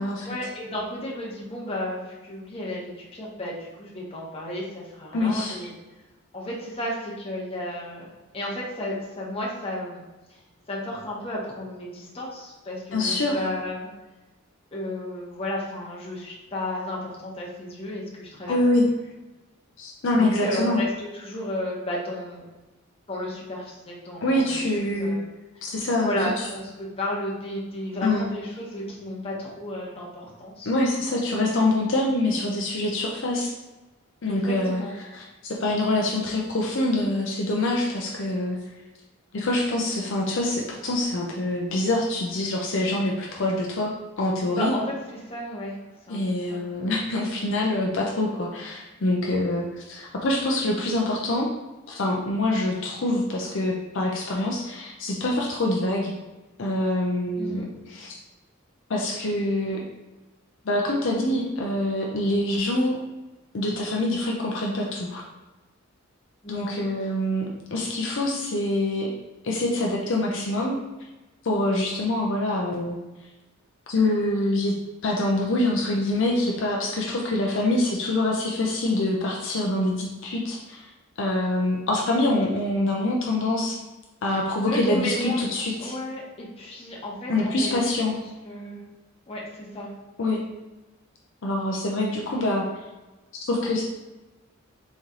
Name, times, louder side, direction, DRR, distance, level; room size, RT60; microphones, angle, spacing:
voice 1, 0.2-5.7 6.3-8.1 8.3-10.0 10.3-10.4 10.7-13.9 14.7-18.8 20.1-22.5 23.1-25.2 26.0-30.7 34.2-34.9 44.4-45.8 46.1-46.7 57.4-57.7 66.4-66.8 84.3-84.4 84.7-85.4 85.8-88.8 89.3-89.9, left 1 dB, 25° left, -5 dB, 1.0 m, -33 dB
voice 2, 5.1-5.6 12.9-13.5 18.5-18.9 19.8-20.8 24.2-25.2 25.6-26.2 28.0-28.3 30.7-33.5 34.2-34.8 35.1-38.6 39.3-44.7 46.1-51.5 51.9-56.1 56.6-57.6 57.9-58.2 58.9-59.8 60.6-63.0 63.5-65.2 66.5-69.1 69.4-70.8 71.4-73.0 73.9-74.7 75.0-80.9 81.2-83.8 84.2-85.9 87.3-88.1 90.2-90.4 91.4-92.6 93.3-93.8, left 1 dB, 60° left, -1 dB, 0.6 m, -25 dB
4.2 x 3.1 x 3.7 m, 1.1 s
head